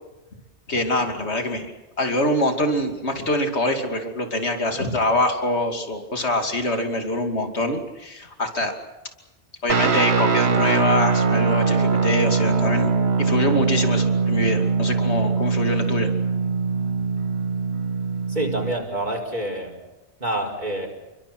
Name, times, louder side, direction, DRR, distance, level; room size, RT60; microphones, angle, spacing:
voice 1, 0.7-8.7 9.6-12.9 13.2-16.1, left 1 dB, 80° left, 5 dB, 2.9 m, -24 dB
Guitar, 9.7-18.8, right 5 dB, 75° right, 1.6 m, -22 dB
voice 2, 18.3-19.8 20.2-20.9, right 1 dB, 45° right, 2 dB, 5.0 m, -27 dB
29.5 x 24.0 x 6.1 m, 1.1 s
omnidirectional pair, 1.1 m